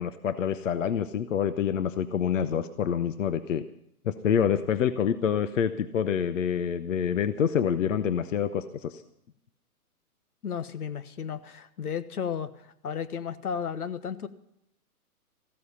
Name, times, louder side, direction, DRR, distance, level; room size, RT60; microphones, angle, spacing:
voice 1, 0.0-3.6 4.0-9.0, left 8 dB, 55° left, 12 dB, 0.9 m, -27 dB
voice 2, 10.4-14.3, left 7 dB, 75° left, 13 dB, 1.3 m, -34 dB
15.0 x 13.5 x 5.7 m, 0.74 s
hypercardioid pair, 160°, 45 cm